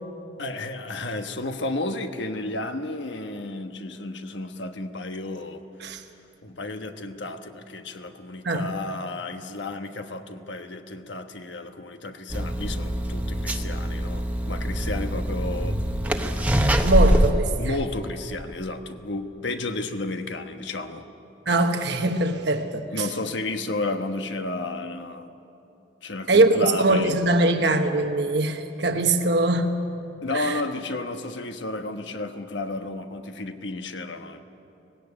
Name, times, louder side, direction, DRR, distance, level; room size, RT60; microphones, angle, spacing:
voice 1, 0.4-6.0 6.4-15.8 17.6-21.0 22.9-25.3 26.0-27.2 30.2-34.4, left 2 dB, 75° left, 7 dB, 1.2 m, -32 dB
sound 1, 12.3-17.3, equal, 10° right, 0.9 m, -24 dB
voice 2, 16.8-17.7 21.5-23.1 26.3-29.8 30.3-30.6, right 2 dB, 65° right, 5 dB, 1.1 m, -22 dB
18.0 x 16.5 x 9.8 m, 2.8 s
head